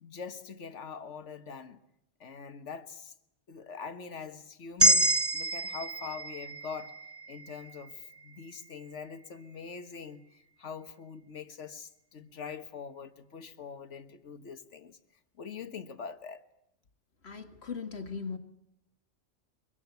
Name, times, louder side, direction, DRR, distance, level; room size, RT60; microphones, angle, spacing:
voice 1, 0.0-1.8 2.2-3.1 3.5-6.9 7.3-15.0 15.4-16.4, left 6 dB, 75° left, 1.7 m, -43 dB
sound 1, 4.8-9.1, right 1 dB, 15° right, 0.9 m, -29 dB
voice 2, 17.2-18.4, left 5 dB, 60° left, 2.1 m, -38 dB
24.0 x 23.5 x 8.2 m
omnidirectional pair, 1.2 m